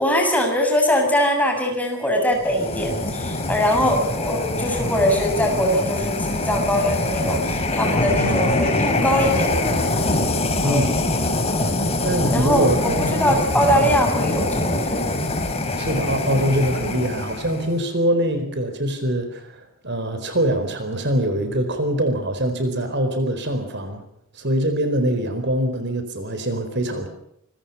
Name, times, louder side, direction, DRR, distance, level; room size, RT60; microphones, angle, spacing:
voice 1, 0.0-9.8 10.6-10.8 12.3-15.0, equal, 5° left, 2 dB, 7.3 m, -22 dB
sound 1, 2.4-17.8, left 2 dB, 30° left, 3.9 m, -24 dB
voice 2, 8.1-8.6 10.6-11.0 12.0-13.4 15.8-24.0 24.3-27.1, right 1 dB, 55° right, 9 dB, 4.3 m, -23 dB
26.5 x 24.0 x 5.6 m, 0.74 s
head